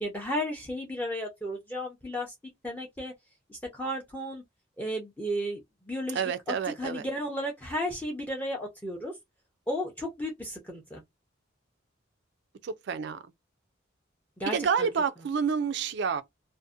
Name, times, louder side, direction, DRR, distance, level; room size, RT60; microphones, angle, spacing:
voice 1, 0.0-2.3 2.6-3.1 3.5-4.4 4.8-5.6 5.9-6.2 6.5-9.1 9.7-11.0 14.4-14.9, equal, 10° left, 0.5 m, -33 dB
voice 2, 6.1-7.0 12.6-13.3 14.5-16.2, right 6 dB, 60° right, 0.3 m, -29 dB
2.6 x 2.0 x 2.3 m
head